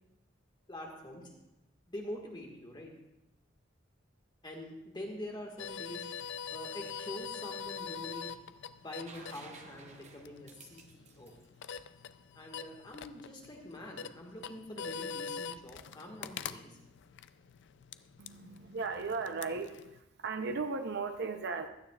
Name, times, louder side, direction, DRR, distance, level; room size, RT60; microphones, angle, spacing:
voice 1, 0.7-1.2 1.9-2.9 4.4-6.0 6.5-8.3 8.8-11.4 12.4-16.8 18.4-18.5, left 1 dB, 25° left, 1 dB, 1.7 m, -45 dB
sound 1, 5.6-20.0, left 6 dB, 65° left, 0.4 m, -44 dB
sound 2, 9.1-12.8 14.6-14.7, right 4 dB, 35° right, 0.9 m, -55 dB
voice 2, 18.2-21.7, right 4 dB, 60° right, 6 dB, 0.7 m, -36 dB
16.0 x 12.0 x 2.4 m, 0.94 s
head